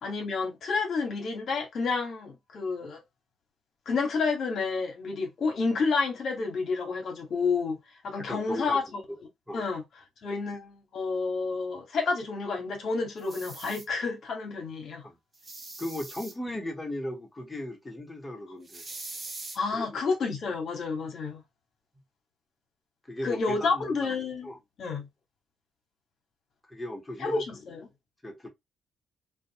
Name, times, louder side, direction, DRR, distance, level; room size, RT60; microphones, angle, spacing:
voice 1, 0.0-3.0 3.9-7.8 8.0-9.0 9.5-9.8 10.2-15.0 19.5-21.4 23.2-24.5 24.8-25.1 27.2-27.9, left 4 dB, 65° left, 1.0 m, -30 dB
voice 2, 8.2-8.8 9.5-9.6 15.0-15.2 15.8-18.8 19.7-20.1 23.1-23.9 24.4-24.6 26.7-27.4 28.2-28.5, left 1 dB, 15° left, 1.1 m, -37 dB
sound 1, 13.2-13.8 15.3-16.3 18.6-19.6, right 2 dB, 35° right, 0.8 m, -42 dB
2.4 x 2.2 x 2.7 m
supercardioid pair, 55°, 0 cm